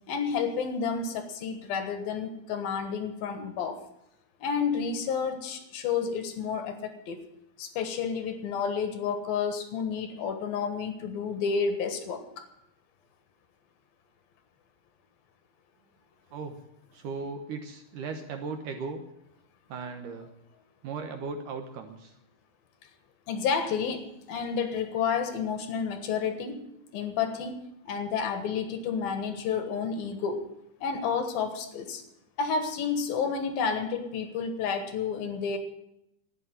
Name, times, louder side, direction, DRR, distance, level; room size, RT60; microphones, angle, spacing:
voice 1, 0.1-3.8 4.4-7.2 7.6-12.5 23.3-24.0 24.3-26.6 26.9-27.6 27.9-30.4 30.8-32.0 32.4-35.6, left 6 dB, 70° left, 8 dB, 3.0 m, -30 dB
voice 2, 16.9-19.0 19.7-20.3 20.8-22.1, right 4 dB, 65° right, 6 dB, 2.2 m, -37 dB
12.5 x 9.8 x 9.2 m, 0.82 s
omnidirectional pair, 4.6 m